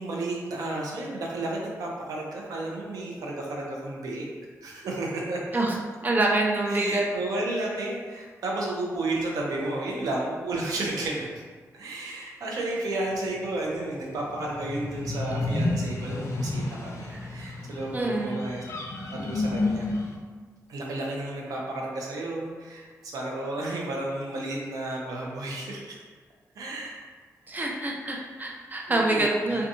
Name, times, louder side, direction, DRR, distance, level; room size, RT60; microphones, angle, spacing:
voice 1, 0.0-4.2 4.6-5.4 6.7-11.4 11.7-18.8 19.1-19.9 20.7-26.0 26.6-27.1 27.4-27.8 28.9-29.6, right 2 dB, 90° right, -2 dB, 0.5 m, -32 dB
voice 2, 6.0-7.0 17.1-17.2 17.9-18.4 27.5-29.7, right 2 dB, 30° right, -1 dB, 0.5 m, -26 dB
sound 1, 14.3-20.2, left 2 dB, 50° left, 0.4 m, -31 dB
2.7 x 2.2 x 2.6 m, 1.5 s
cardioid pair, 70°, 6 cm